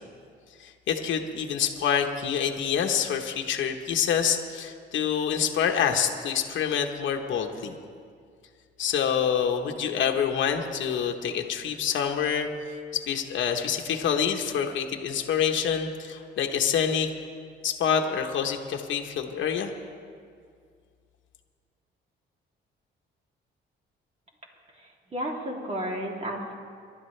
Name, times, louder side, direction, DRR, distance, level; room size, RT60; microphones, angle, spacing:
voice 1, 0.6-7.8 8.8-12.5 12.9-17.1 17.6-19.7, left 8 dB, 70° left, 3 dB, 1.2 m, -26 dB
voice 2, 24.8-26.5, equal, 35° right, -1 dB, 3.0 m, -33 dB
25.5 x 12.0 x 3.3 m, 2.2 s
cardioid pair, 90°, 20 cm